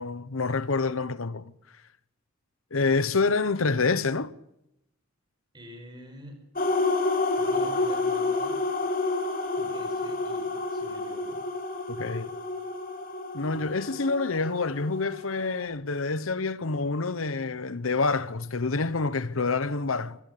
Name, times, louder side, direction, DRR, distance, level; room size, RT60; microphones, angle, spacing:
voice 1, 0.0-1.5 2.7-4.3 11.9-12.3 13.3-20.2, left 3 dB, 75° left, 1.0 m, -27 dB
voice 2, 5.5-6.4 7.4-8.6 9.6-11.4, equal, 20° right, 5.2 m, -47 dB
sound 1, 6.6-15.7, left 3 dB, 45° left, 3.1 m, -29 dB
24.5 x 16.0 x 6.8 m
head